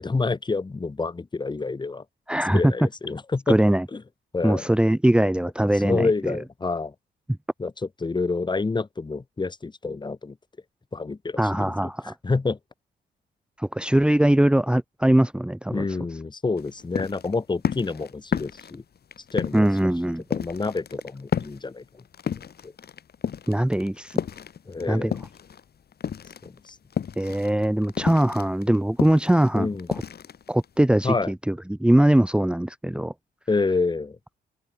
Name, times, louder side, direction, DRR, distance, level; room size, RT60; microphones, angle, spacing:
voice 1, 0.0-2.0 2.5-3.6 3.9-4.0 4.3-4.6 5.7-6.9 7.6-7.7 8.0-10.4 10.9-11.9 12.2-12.6 15.7-18.8 19.3-19.7 20.3-21.8 22.6-22.7 24.7-25.2 26.4-26.8 29.5-29.9 31.0-31.3 33.5-34.2, left 3 dB, 20° left, 1.9 m, -28 dB
voice 2, 2.3-2.7 3.5-3.8 4.4-6.4 11.4-12.1 13.6-15.9 19.5-20.2 23.5-24.2 24.9-25.1 27.2-29.7 30.5-33.1, right 1 dB, 5° right, 1.4 m, -21 dB
sound 1, 16.6-25.6 25.9-30.9, left 8 dB, 50° left, 5.6 m, -31 dB
open air
cardioid pair, 90°, 20 cm